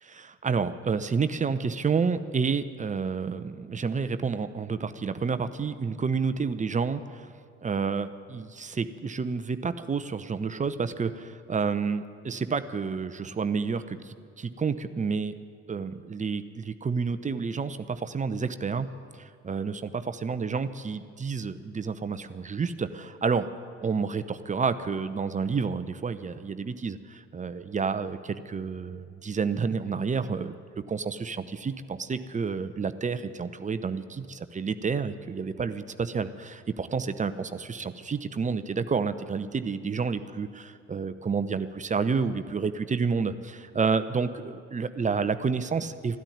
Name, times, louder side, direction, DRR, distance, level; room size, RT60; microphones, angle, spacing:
voice 1, 0.0-7.3 7.6-15.4 15.7-18.9 19.1-23.5 23.8-30.5 30.9-46.2, right 5 dB, 20° right, 11 dB, 0.8 m, -30 dB
13.0 x 12.5 x 8.9 m, 2.2 s
figure-of-eight pair, 55°, 37 cm